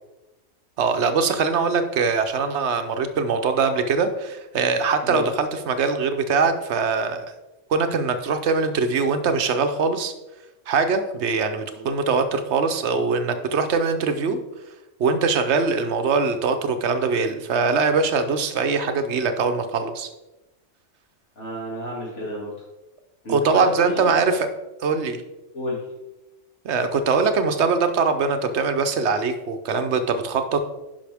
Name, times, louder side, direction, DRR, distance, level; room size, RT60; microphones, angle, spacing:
voice 1, 0.8-7.3 7.7-10.1 10.7-14.4 15.0-20.1 23.3-24.5 24.8-25.2 26.6-30.6, right 4 dB, 65° right, 8 dB, 1.1 m, -22 dB
voice 2, 21.4-22.5 23.2-24.1 25.5-25.8, equal, 65° left, -5 dB, 2.8 m, -31 dB
10.5 x 5.6 x 3.5 m, 1.0 s
omnidirectional pair, 1.3 m